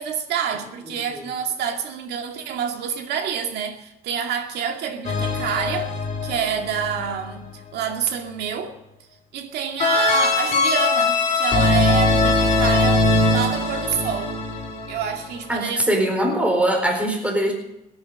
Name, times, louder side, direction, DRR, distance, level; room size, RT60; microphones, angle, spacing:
voice 1, 0.0-5.9 6.2-8.8 9.3-14.3 14.9-15.9, right 7 dB, 75° right, 2.2 m, -27 dB
sound 1, 5.0-7.1 9.8-15.3, left 3 dB, 45° left, 3.1 m, -21 dB
voice 2, 15.5-17.5, right 1 dB, 5° right, 4.2 m, -21 dB
17.0 x 10.5 x 6.4 m
cardioid pair, 110°, 17 cm